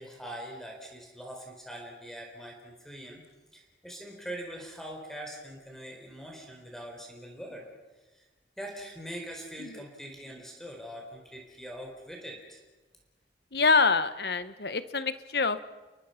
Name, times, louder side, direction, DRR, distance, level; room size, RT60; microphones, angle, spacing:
voice 1, 0.0-3.2 3.5-7.7 8.1-8.2 8.6-12.6, equal, ahead, 1 dB, 4.2 m, -43 dB
voice 2, 13.5-15.6, left 4 dB, 60° left, 13 dB, 1.1 m, -26 dB
30.0 x 23.0 x 5.8 m, 1.2 s
head